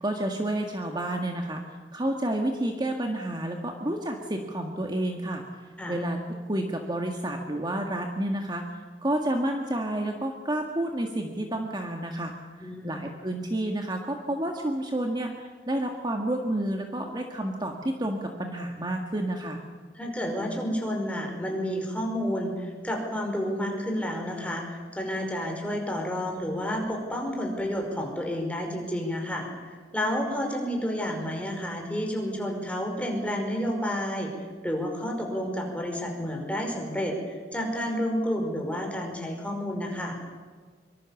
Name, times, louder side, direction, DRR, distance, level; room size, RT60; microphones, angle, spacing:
voice 1, 0.0-5.4 5.9-12.3 12.6-19.6, right 1 dB, 25° right, 2 dB, 1.8 m, -30 dB
voice 2, 12.6-13.0 19.9-34.3 34.6-40.2, equal, 10° left, 1 dB, 5.2 m, -30 dB
24.5 x 24.5 x 7.2 m, 1.5 s
head